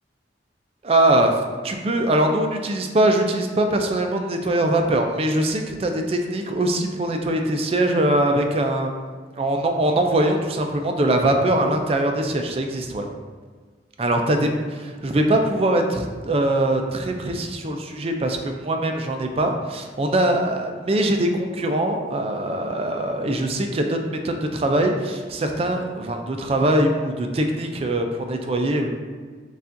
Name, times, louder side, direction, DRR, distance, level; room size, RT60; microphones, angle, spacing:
voice 1, 0.8-8.9 9.4-13.1 14.0-28.9, right 1 dB, 30° right, 4 dB, 0.3 m, -22 dB
6.8 x 2.4 x 2.6 m, 1.5 s
head